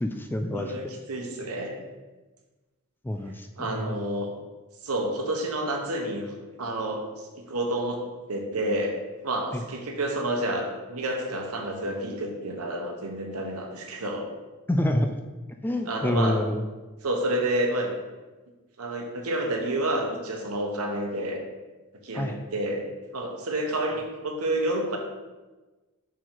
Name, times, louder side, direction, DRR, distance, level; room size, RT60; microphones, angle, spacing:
voice 1, 0.0-0.7 3.0-3.9 9.5-9.6 14.7-15.1 15.6-16.6 22.1-22.4, left 1 dB, 10° left, 6 dB, 0.3 m, -27 dB
voice 2, 0.5-1.7 3.6-4.3 4.8-7.0 7.5-8.0 8.3-8.9 9.2-14.2 15.8-16.4 17.0-17.9 18.8-21.4 22.0-22.8 23.1-25.0, right 1 dB, 70° right, 2 dB, 1.1 m, -29 dB
6.1 x 4.5 x 3.9 m, 1.2 s
head